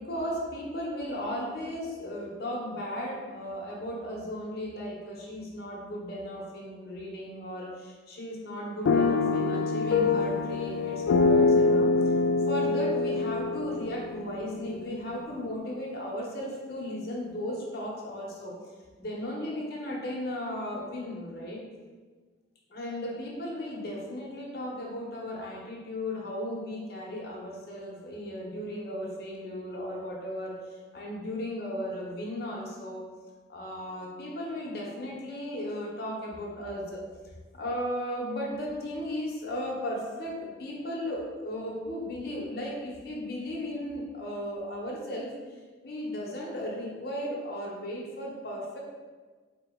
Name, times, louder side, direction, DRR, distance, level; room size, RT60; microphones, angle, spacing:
voice 1, 0.0-11.9 12.5-18.6 19.0-21.7 22.7-33.0 33.5-37.0 37.5-48.8, equal, 55° left, -3 dB, 0.8 m, -36 dB
sound 1, 8.9-14.9, left 3 dB, 85° left, 0.3 m, -25 dB
4.3 x 2.9 x 3.6 m, 1.4 s
head